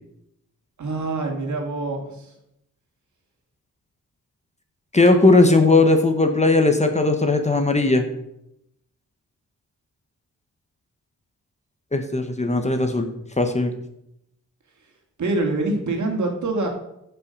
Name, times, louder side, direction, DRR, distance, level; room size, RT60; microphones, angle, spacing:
voice 1, 0.8-2.3 5.1-5.4 15.2-16.7, right 3 dB, 60° right, 2 dB, 2.6 m, -25 dB
voice 2, 4.9-8.0 11.9-13.1 13.4-13.7, left 2 dB, 20° left, 6 dB, 1.2 m, -18 dB
15.0 x 6.0 x 5.4 m, 0.83 s
wide cardioid pair, 110°, 33 cm